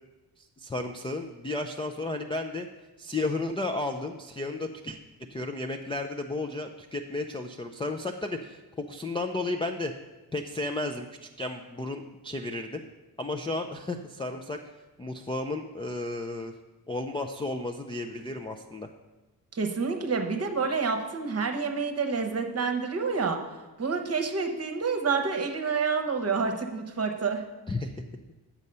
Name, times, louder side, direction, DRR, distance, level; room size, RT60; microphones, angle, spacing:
voice 1, 0.4-2.7 3.0-5.0 5.3-9.9 10.3-12.8 13.2-14.6 15.0-16.5 16.9-18.9 27.7-28.0, left 2 dB, 15° left, 1 dB, 0.3 m, -33 dB
voice 2, 19.5-23.4 23.8-27.4, right 5 dB, 35° right, 6 dB, 0.9 m, -28 dB
8.0 x 7.4 x 5.4 m, 1.1 s
wide cardioid pair, 145°, 43 cm